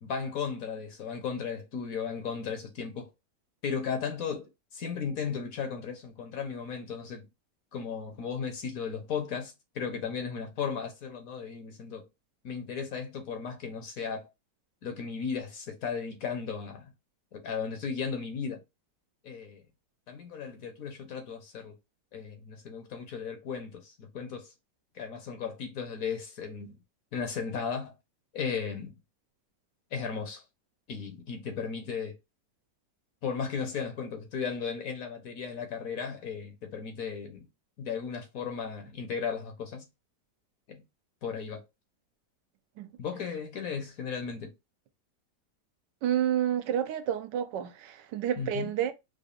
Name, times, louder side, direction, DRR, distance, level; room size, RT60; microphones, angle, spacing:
voice 1, 0.0-3.1 3.6-7.2 7.7-12.1 12.4-14.3 14.8-16.9 17.3-18.6 19.2-19.6 20.1-21.7 22.1-24.5 24.9-26.8 27.1-27.9 28.3-28.9 29.9-30.4 30.9-32.2 33.2-37.5 37.8-39.9 40.7-40.8 41.2-41.6 43.0-44.5 48.4-48.7, left 6 dB, 60° left, 1.2 m, -35 dB
voice 2, 46.0-48.9, right 10 dB, 80° right, 1.3 m, -29 dB
5.0 x 2.5 x 2.5 m
omnidirectional pair, 1.9 m